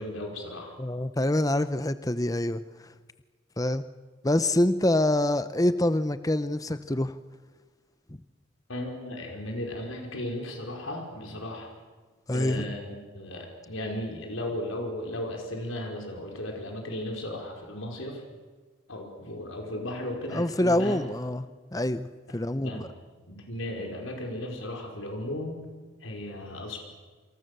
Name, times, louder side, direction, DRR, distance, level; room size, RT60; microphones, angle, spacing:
voice 1, 0.0-0.7 8.7-11.7 12.3-18.2 18.9-21.1 22.6-22.9 23.3-25.6 26.0-26.8, left 1 dB, 70° left, 1 dB, 5.2 m, -35 dB
voice 2, 0.8-2.6 3.6-3.8 4.2-7.1 12.3-12.7 20.3-21.4 21.7-22.9, left 1 dB, 15° left, 12 dB, 0.8 m, -26 dB
28.0 x 26.5 x 6.8 m, 1.3 s
head